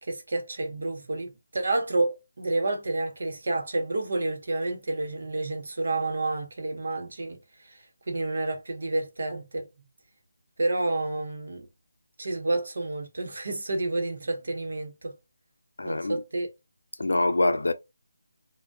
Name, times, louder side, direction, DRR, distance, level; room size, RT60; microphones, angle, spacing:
voice 1, 0.0-9.7 10.6-11.7 12.2-15.1 15.8-16.5, right 2 dB, 65° right, 0.9 m, -30 dB
voice 2, 15.8-16.2 17.0-17.7, left 2 dB, 85° left, 0.4 m, -24 dB
2.2 x 2.2 x 2.6 m
figure-of-eight pair, 170°, 0 cm